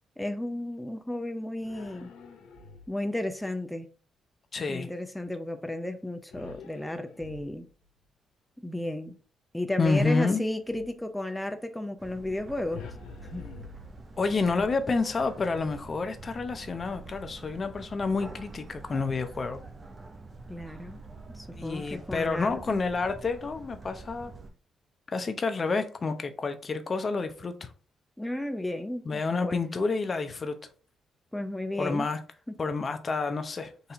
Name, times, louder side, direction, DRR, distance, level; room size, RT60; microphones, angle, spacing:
voice 1, 0.2-2.1 2.9-3.9 4.7-7.7 8.6-9.2 9.5-12.9 13.2-13.4 20.5-21.0 21.3-22.8 28.2-29.6 31.3-32.1 32.5-32.6, left 1 dB, 10° left, 0.6 m, -33 dB
sound 1, 1.6-3.1 6.3-7.9 9.8-11.0 12.7-14.4, left 5 dB, 75° left, 0.7 m, -47 dB
voice 2, 4.5-4.9 9.8-10.4 14.2-19.6 21.5-24.3 25.1-27.7 29.0-30.6 31.8-32.2 32.6-33.7, left 4 dB, 45° left, 0.8 m, -29 dB
sound 2, 12.0-24.5, right 3 dB, 40° right, 0.8 m, -46 dB
4.1 x 2.7 x 4.8 m
hypercardioid pair, 50°, 0 cm